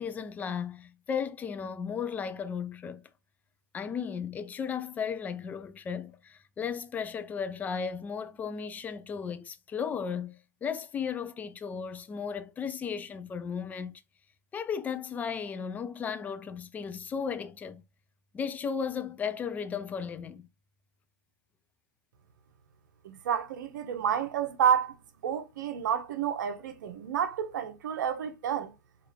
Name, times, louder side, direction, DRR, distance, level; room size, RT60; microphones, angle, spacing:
voice 1, 0.0-3.0 3.7-14.0 14.5-17.8 18.3-20.5, left 6 dB, 15° left, 0.4 m, -35 dB
voice 2, 23.0-25.0 25.2-28.7, right 8 dB, 65° right, 0.9 m, -29 dB
4.7 x 2.5 x 3.2 m
hypercardioid pair, 125°, 11 cm